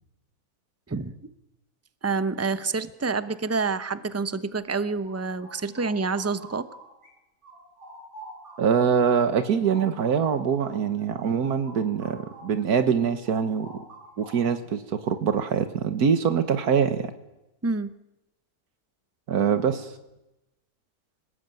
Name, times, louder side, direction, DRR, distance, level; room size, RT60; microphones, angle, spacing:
voice 1, 2.0-6.7 17.6-17.9, right 4 dB, 15° right, 13 dB, 0.7 m, -28 dB
sound 1, 4.6-7.1 7.4-12.6 12.9-14.7, right 1 dB, 50° right, 5.0 m, -47 dB
voice 2, 8.6-13.8 14.2-17.0 19.3-19.9, right 7 dB, 80° right, 9 dB, 1.8 m, -24 dB
26.5 x 19.5 x 9.1 m, 0.96 s
omnidirectional pair, 1.6 m